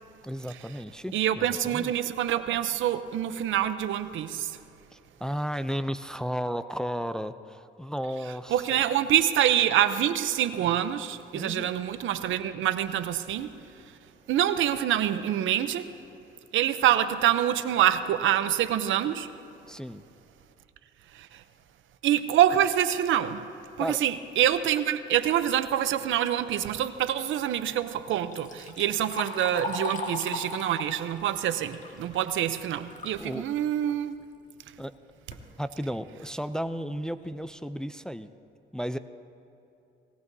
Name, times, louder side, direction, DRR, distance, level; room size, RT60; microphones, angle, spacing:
voice 1, 0.2-1.9 4.9-8.8 11.3-11.7 19.7-20.0 23.8-24.0 33.2-33.4 34.8-35.0 35.6-38.3 38.7-39.0, equal, 5° left, 10 dB, 0.4 m, -34 dB
voice 2, 1.1-4.6 8.5-13.5 14.3-15.9 16.5-19.3 21.1-21.4 22.0-23.5 23.8-34.1, right 11 dB, 80° right, 12 dB, 0.7 m, -26 dB
Liquid, 28.1-33.2 33.6-33.7 34.6-34.7 35.1-35.5 36.1-36.2 36.7-36.8 37.2-37.4, left 3 dB, 40° left, 1.7 m, -38 dB
20.0 x 18.0 x 2.7 m, 2.8 s
cardioid pair, 90°, 20 cm